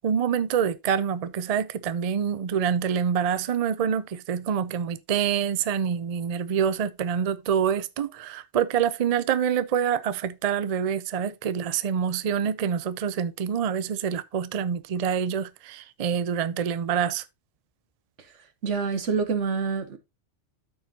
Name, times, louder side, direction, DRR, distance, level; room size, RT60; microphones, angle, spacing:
voice 1, 0.0-17.2, right 8 dB, 50° right, 0.4 m, -26 dB
voice 2, 18.6-20.0, right 5 dB, 85° right, 1.4 m, -26 dB
13.5 x 4.5 x 2.7 m
omnidirectional pair, 1.2 m